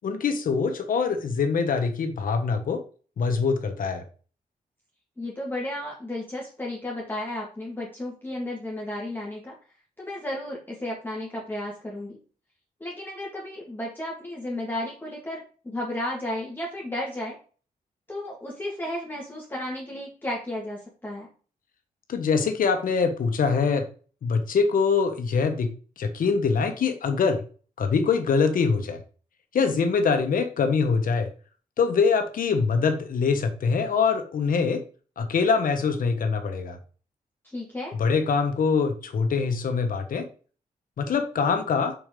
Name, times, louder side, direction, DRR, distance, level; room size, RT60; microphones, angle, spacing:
voice 1, 0.0-2.8 3.2-4.0 22.1-23.9 24.2-27.4 27.8-29.0 29.5-31.3 31.8-34.8 35.2-36.8 38.0-40.3 41.0-41.9, left 5 dB, 70° left, 6 dB, 1.3 m, -24 dB
voice 2, 5.2-9.6 10.0-12.2 12.8-17.4 18.1-21.3 37.4-38.0, left 1 dB, 15° left, -4 dB, 1.9 m, -33 dB
6.1 x 5.0 x 3.8 m, 0.39 s
cardioid pair, 105°, 15 cm